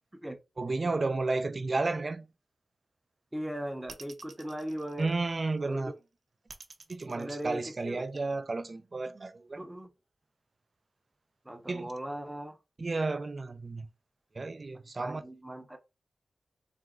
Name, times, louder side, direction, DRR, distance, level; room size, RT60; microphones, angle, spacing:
voice 1, 0.6-2.3 5.0-5.9 6.9-9.7 11.7-11.9 12.8-13.9 14.3-15.2, right 3 dB, 40° right, 0.5 m, -32 dB
voice 2, 3.3-5.1 5.6-5.9 7.1-8.0 9.6-9.9 11.4-12.6 15.0-15.8, equal, 10° right, 0.8 m, -38 dB
sound 1, 3.9-5.6 6.5-8.2, right 4 dB, 70° right, 0.7 m, -50 dB
4.3 x 2.3 x 3.7 m
wide cardioid pair, 120°, 0 cm